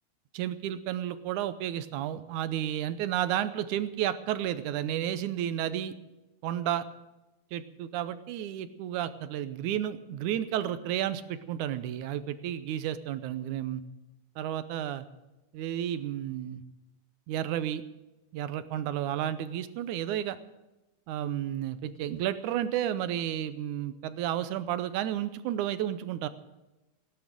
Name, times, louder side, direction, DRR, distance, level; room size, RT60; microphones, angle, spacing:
voice 1, 0.3-5.9 6.4-6.9 7.5-13.8 14.4-15.1 15.5-16.6 17.3-17.8 18.3-20.4 21.1-26.3, right 11 dB, 80° right, 13 dB, 2.2 m, -32 dB
17.0 x 10.5 x 7.7 m, 1.0 s
omnidirectional pair, 3.5 m